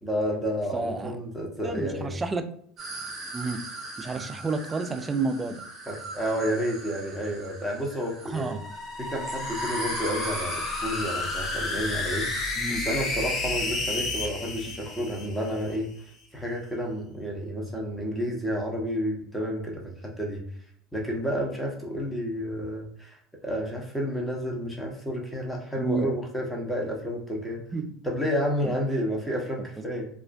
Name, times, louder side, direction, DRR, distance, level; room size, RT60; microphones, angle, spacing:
voice 1, 0.0-2.2 4.0-4.3 5.9-8.6 9.0-12.3 12.7-15.9 16.3-20.4 20.9-23.2 23.4-27.6 28.0-30.1, equal, 5° left, -1 dB, 0.8 m, -30 dB
voice 2, 0.7-1.1 1.6-2.4 3.3-3.6 4.0-5.6 8.3-8.6 12.6-12.9 25.8-26.1 27.7-28.0 28.6-28.7, right 3 dB, 20° right, 8 dB, 0.3 m, -30 dB
sound 1, 2.8-12.5, right 2 dB, 40° right, 0.8 m, -39 dB
sound 2, 8.3-15.8, left 2 dB, 40° left, 0.6 m, -31 dB
2.5 x 2.0 x 2.4 m, 0.62 s
hypercardioid pair, 85°, 0 cm